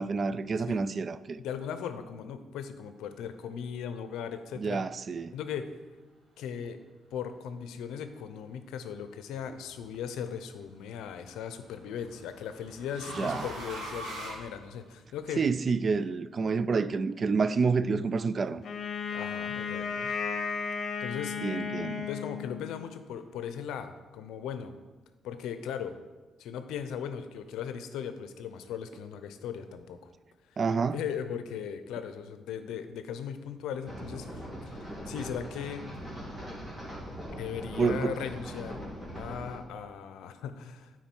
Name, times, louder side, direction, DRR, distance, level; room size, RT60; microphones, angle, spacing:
voice 1, 0.0-1.4 4.6-5.3 13.2-13.4 15.4-18.6 21.4-22.1 30.6-31.0 37.8-38.2, right 4 dB, 40° right, 0.3 m, -28 dB
voice 2, 1.4-4.8 5.3-5.7 6.4-6.8 7.1-15.4 19.1-20.2 21.0-21.4 22.1-24.7 25.2-25.9 26.4-30.1 30.5-35.9 37.4-38.8 39.2-40.9, left 8 dB, 85° left, 0.6 m, -38 dB
sound 1, 9.3-9.8 11.2-15.2, right 1 dB, 80° right, 1.9 m, -42 dB
Wind instrument woodwind instrument, 18.6-22.8, left 6 dB, 55° left, 1.0 m, -34 dB
sound 2, 33.8-39.6, equal, 15° right, 2.5 m, -41 dB
9.1 x 4.5 x 4.5 m
cardioid pair, 90°, 0 cm